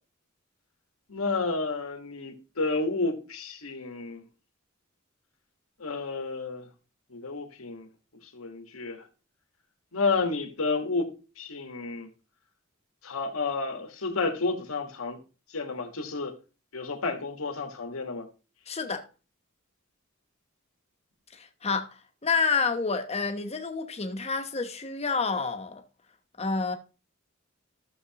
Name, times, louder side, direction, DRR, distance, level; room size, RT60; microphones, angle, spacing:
voice 1, 1.1-4.2 5.8-6.7 7.1-7.9 8.3-9.0 9.9-11.1 11.4-12.1 13.0-15.2 15.5-16.3 16.7-18.3, left 3 dB, 90° left, 1.5 m, -31 dB
voice 2, 18.7-19.0 21.3-21.9 22.2-25.8 26.4-26.8, left 4 dB, 30° left, 0.9 m, -28 dB
13.5 x 6.6 x 2.9 m
head